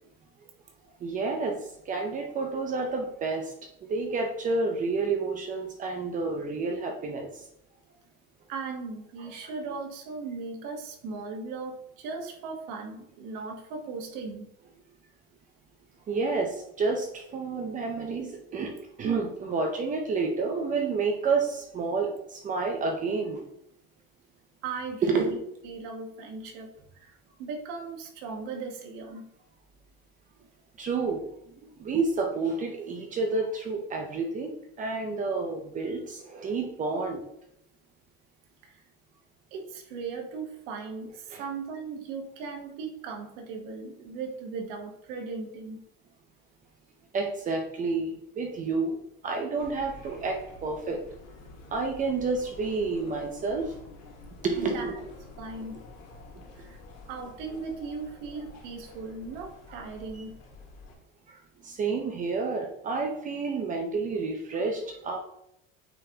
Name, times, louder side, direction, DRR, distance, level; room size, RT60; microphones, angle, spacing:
voice 1, 1.0-3.5 3.8-7.5 16.1-23.4 25.0-25.3 30.8-37.2 41.3-41.4 47.1-48.1 48.4-49.0 49.2-51.0 51.7-53.7 54.4-55.0 59.7-59.8 61.3-65.2, right 4 dB, 25° right, 2 dB, 0.7 m, -30 dB
voice 2, 8.5-14.5 24.6-29.3 38.6-38.8 39.5-45.8 54.6-55.0 55.4-55.8 56.6-56.8 57.1-60.4, right 4 dB, 75° right, 3 dB, 1.3 m, -38 dB
sound 1, 49.6-60.9, left 3 dB, 60° left, 1.9 m, -49 dB
8.9 x 3.7 x 2.9 m, 0.75 s
cardioid pair, 165°, 29 cm